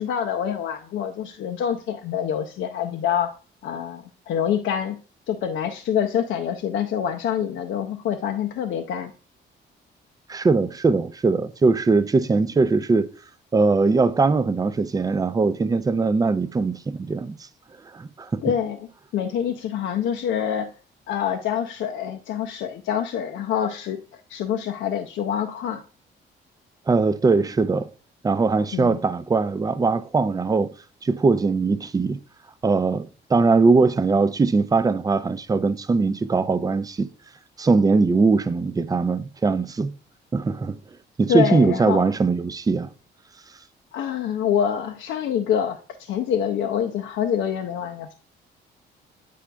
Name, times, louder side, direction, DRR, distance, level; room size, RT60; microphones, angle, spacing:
voice 1, 0.0-3.3 3.6-5.0 5.3-9.1 18.4-20.7 21.1-25.8 28.7-29.0 41.3-42.1 43.9-48.1, left 9 dB, 75° left, 0.5 m, -26 dB
voice 2, 10.3-13.1 13.5-17.3 17.9-18.4 26.9-27.9 28.2-30.7 31.0-32.2 32.6-37.1 37.6-39.9 40.3-40.8 41.2-42.9, right 4 dB, 20° right, 0.4 m, -21 dB
8.4 x 4.9 x 2.2 m
cardioid pair, 90°, 20 cm